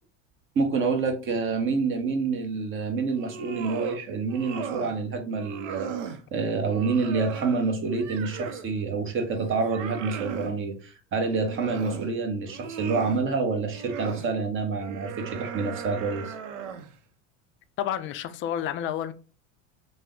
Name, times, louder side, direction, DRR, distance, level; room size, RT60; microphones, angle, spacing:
voice 1, 0.5-16.3, right 4 dB, 35° right, 0.8 m, -27 dB
sound 1, 3.1-4.0 4.3-5.0 5.3-6.2 6.7-8.7 9.2-10.6 11.2-12.1 12.5-13.2 13.7-14.3 14.8-17.0, right 7 dB, 90° right, 0.5 m, -37 dB
voice 2, 17.8-19.1, left 10 dB, 35° left, 0.4 m, -30 dB
3.3 x 2.0 x 3.6 m
supercardioid pair, 100°, 36 cm